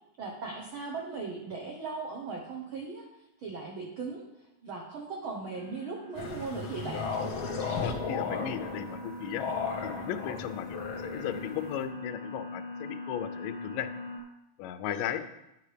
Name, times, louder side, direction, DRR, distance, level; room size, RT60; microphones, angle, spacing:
voice 1, 0.2-3.1 3.4-4.2 4.6-7.1 14.9-15.1, right 4 dB, 75° right, -1 dB, 1.1 m, -38 dB
sound 1, 5.5-14.2, left 2 dB, 40° right, 1.2 m, -42 dB
sound 2, 6.1-11.8, left 5 dB, 65° left, 1.3 m, -35 dB
voice 2, 7.8-9.5 9.8-13.9 14.6-15.2, left 10 dB, 85° left, 11 dB, 2.2 m, -36 dB
10.0 x 9.4 x 3.3 m, 0.89 s
omnidirectional pair, 3.8 m